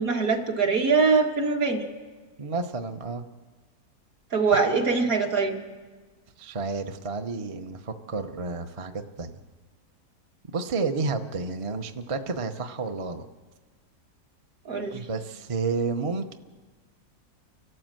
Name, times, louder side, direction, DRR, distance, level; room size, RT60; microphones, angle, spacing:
voice 1, 0.0-1.8 4.3-5.6 14.7-15.1, right 4 dB, 55° right, 2 dB, 2.2 m, -23 dB
voice 2, 2.4-3.2 6.4-9.4 10.5-13.3 14.9-16.3, right 4 dB, 35° right, 6 dB, 0.5 m, -31 dB
29.5 x 12.5 x 7.7 m, 1.4 s
omnidirectional pair, 1.8 m